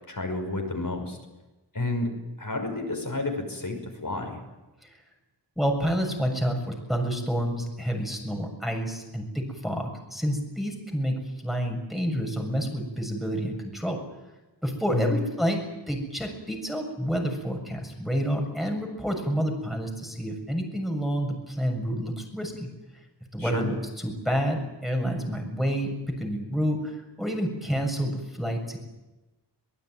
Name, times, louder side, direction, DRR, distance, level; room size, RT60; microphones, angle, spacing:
voice 1, 0.1-1.2 1.7-2.1 2.4-4.4 14.9-15.2 23.4-23.7, left 2 dB, 50° left, 3 dB, 6.0 m, -30 dB
voice 2, 5.6-14.0 14.6-22.7 23.3-23.7 24.0-28.8, equal, ahead, 2 dB, 7.0 m, -29 dB
24.0 x 19.5 x 9.4 m, 1.1 s
wide cardioid pair, 65°, 43 cm